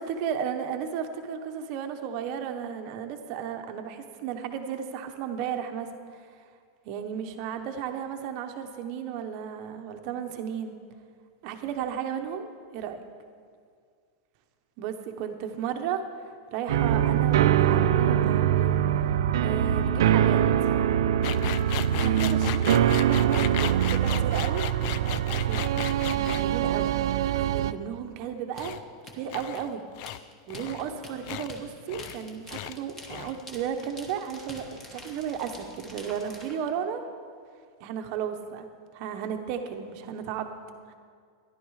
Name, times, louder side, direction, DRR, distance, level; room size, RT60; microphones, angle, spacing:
voice 1, 0.0-6.3 6.8-10.8 11.4-13.0 14.8-18.7 19.4-20.7 22.0-24.6 25.3-25.7 26.1-27.0 27.3-28.7 29.1-29.8 30.5-37.0 37.8-38.7 38.9-40.6 40.9-41.0, right 8 dB, 35° right, 6 dB, 0.9 m, -34 dB
sound 1, 16.7-27.7, right 10 dB, 80° right, 0.4 m, -23 dB
sound 2, 21.2-26.5 28.5-28.8 29.3-29.7 30.0-30.2 30.5-30.9 31.2-31.5 31.9-32.2 32.5-32.8 33.0-33.4, left 13 dB, 35° left, 0.3 m, -36 dB
sound 3, 28.6-36.6, left 1 dB, 10° left, 1.2 m, -46 dB
14.0 x 11.0 x 4.8 m, 2.1 s
supercardioid pair, 175°, 2 cm